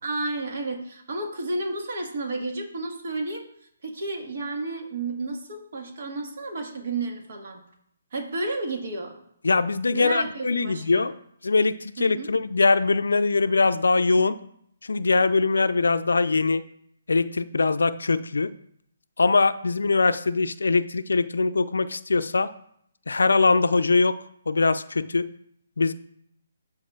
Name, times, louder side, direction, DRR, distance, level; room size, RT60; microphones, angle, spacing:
voice 1, 0.0-3.5 3.8-7.6 8.1-9.1 9.9-11.0 12.0-12.3, right 2 dB, 55° right, 3 dB, 1.5 m, -31 dB
voice 2, 9.4-11.1 11.4-14.4 14.8-16.6 17.1-18.5 19.2-22.5 23.1-24.2 24.5-25.3 25.8-25.9, left 3 dB, 75° left, 13 dB, 0.4 m, -22 dB
12.0 x 4.8 x 2.4 m, 0.71 s
figure-of-eight pair, 140°, 0 cm